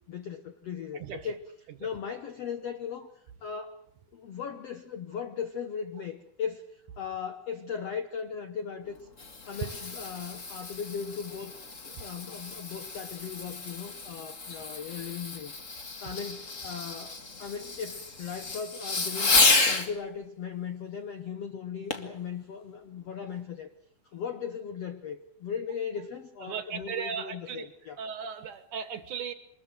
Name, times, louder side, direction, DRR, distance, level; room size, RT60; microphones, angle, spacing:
voice 1, 0.1-1.5 1.8-3.1 3.4-3.8 4.1-9.1 9.5-11.5 11.8-15.5 16.0-19.3 19.7-23.7 24.1-28.0, left 7 dB, 65° left, 8 dB, 1.6 m, -38 dB
Fireworks, 8.9-19.9 21.9-22.2 22.8-22.9, left 3 dB, 35° left, 1.2 m, -31 dB
voice 2, 26.5-27.7 28.0-29.3, right 7 dB, 60° right, 11 dB, 2.5 m, -36 dB
25.0 x 21.0 x 7.9 m, 0.66 s
omnidirectional pair, 4.5 m